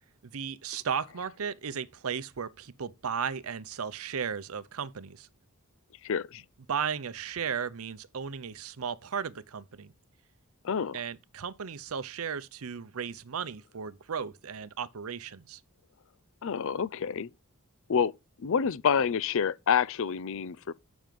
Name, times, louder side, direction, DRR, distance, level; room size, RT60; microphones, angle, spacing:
voice 1, 0.3-5.3 6.7-9.9 10.9-15.6, right 7 dB, 70° right, 0.6 m, -35 dB
voice 2, 6.0-6.4 10.6-11.0 16.4-17.3 17.9-18.1 18.4-20.7, left 7 dB, 60° left, 0.5 m, -28 dB
9.2 x 6.1 x 5.1 m
head